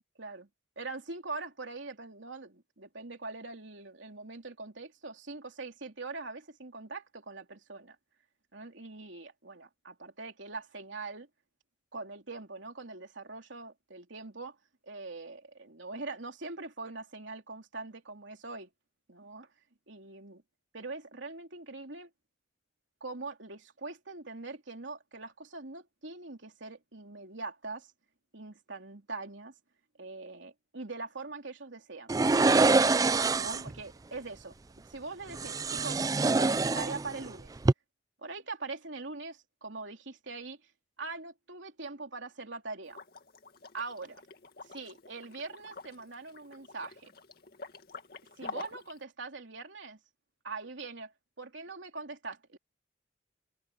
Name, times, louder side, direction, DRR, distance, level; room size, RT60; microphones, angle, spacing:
voice 1, 0.2-0.5 0.8-8.0 8.5-11.3 11.9-14.6 14.9-18.7 19.1-19.5 19.9-20.4 20.7-22.1 23.0-27.9 28.3-29.5 30.0-32.2 33.4-34.5 34.8-36.0 36.3-37.5 38.2-40.6 41.0-43.0 43.7-44.2 44.6-47.1 48.4-50.0 50.4-52.6, right 3 dB, 80° right, 3.2 m, -42 dB
sound 1, 32.1-33.7 35.3-37.3 37.6-37.7, right 3 dB, 20° right, 0.3 m, -25 dB
Liquid, 42.9-49.0, left 4 dB, 55° left, 2.2 m, -47 dB
head